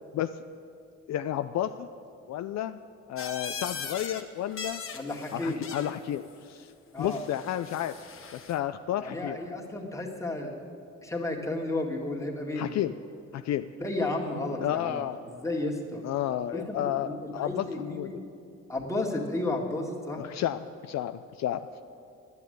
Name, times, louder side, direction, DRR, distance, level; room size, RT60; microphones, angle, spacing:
voice 1, 1.1-1.9 2.3-2.8 3.1-4.8 5.3-6.7 7.0-7.9 8.3-9.4 12.5-12.9 13.3-13.7 14.6-15.2 16.0-18.1 20.2-21.7, left 11 dB, 60° left, 10 dB, 0.5 m, -31 dB
sound 1, 3.2-4.2 4.5-6.0 7.0-8.6, left 5 dB, 45° left, 1.2 m, -40 dB
voice 2, 4.9-5.6 6.9-7.2 9.0-10.5 11.0-12.7 13.8-15.0 15.4-16.0 16.5-18.2 18.7-20.2, left 2 dB, 10° left, -1 dB, 2.0 m, -32 dB
10.5 x 8.2 x 9.2 m, 2.5 s
cardioid pair, 90°, 30 cm